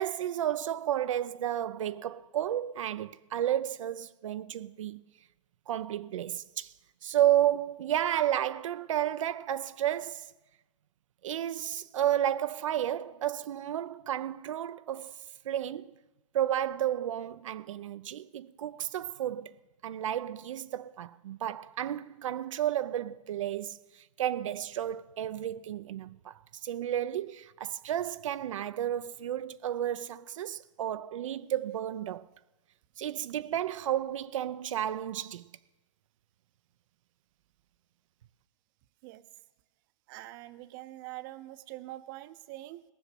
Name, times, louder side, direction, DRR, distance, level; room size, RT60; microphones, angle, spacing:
voice 1, 0.0-5.0 5.7-6.7 7.0-10.3 11.2-15.1 15.5-15.9 16.3-19.5 19.8-32.3 33.0-35.4, right 11 dB, 80° right, 0.5 m, -32 dB
voice 2, 40.1-42.8, right 17 dB, 40° right, 0.7 m, -44 dB
18.5 x 6.4 x 7.6 m
hypercardioid pair, 145°, 16 cm